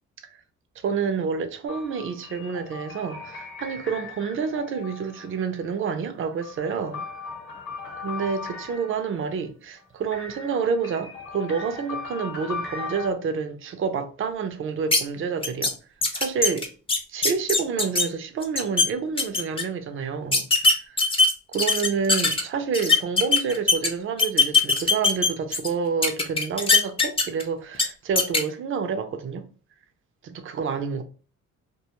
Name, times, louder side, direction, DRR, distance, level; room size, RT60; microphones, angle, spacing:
voice 1, 0.8-7.0 8.0-15.7 16.1-16.7 17.1-21.0 21.5-29.4 30.2-31.0, right 6 dB, 45° right, 0.5 m, -28 dB
sound 1, 1.7-5.5 6.2-9.3 10.1-13.1, left 4 dB, 40° left, 0.9 m, -38 dB
sound 2, 14.9-15.0 15.4-15.7 16.0-18.0 18.4-18.9 19.2-19.6 20.3-22.4 22.7-23.9 24.2-25.7 26.0-27.4 27.7-27.8 28.2-28.4, left 4 dB, 20° left, 0.5 m, -20 dB
2.4 x 2.3 x 2.8 m
cardioid pair, 90°, 30 cm